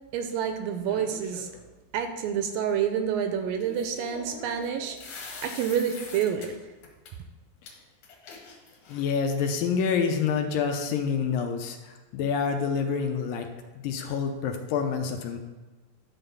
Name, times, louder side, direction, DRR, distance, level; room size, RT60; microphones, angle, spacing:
voice 1, 0.1-1.5 1.9-6.5, right 8 dB, 80° right, 6 dB, 2.2 m, -28 dB
sound 1, 0.9-1.6 3.6-6.5 6.8-7.1 7.7-7.8 8.0-9.2, left 4 dB, 60° left, 2.6 m, -43 dB
voice 2, 8.9-13.5 13.8-15.4, left 6 dB, 80° left, 4 dB, 2.3 m, -27 dB
11.0 x 3.9 x 6.9 m, 1.2 s
omnidirectional pair, 4.2 m